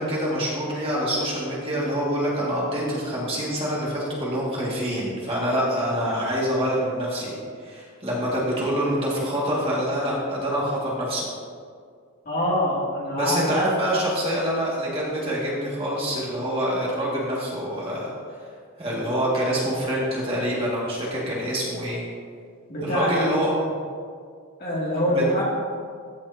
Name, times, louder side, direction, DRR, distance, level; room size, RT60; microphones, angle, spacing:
voice 1, 0.0-11.3 13.2-18.1 18.8-22.0 22.8-23.5 25.1-25.2, equal, 25° right, -6 dB, 2.0 m, -26 dB
voice 2, 12.2-13.5 22.7-23.2 24.6-25.4, equal, 45° left, -6 dB, 2.5 m, -24 dB
15.0 x 6.7 x 2.8 m, 2.1 s
head